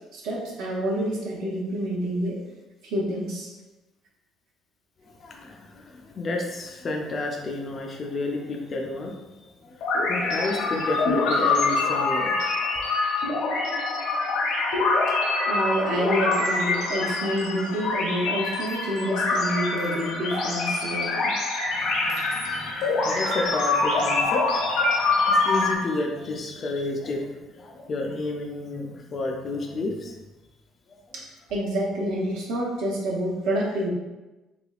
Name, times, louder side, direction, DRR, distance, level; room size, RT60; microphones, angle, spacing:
voice 1, 0.1-2.4 2.8-3.5 15.5-21.3 31.1-33.9, right 1 dB, 70° right, -3 dB, 0.6 m, -28 dB
voice 2, 5.0-12.6 21.7-30.2 30.9-31.0, left 2 dB, 25° left, 1 dB, 0.3 m, -31 dB
sound 1, 9.8-25.7, left 3 dB, 65° left, 0.6 m, -25 dB
3.2 x 3.0 x 2.4 m, 1.1 s
cardioid pair, 180°, 0 cm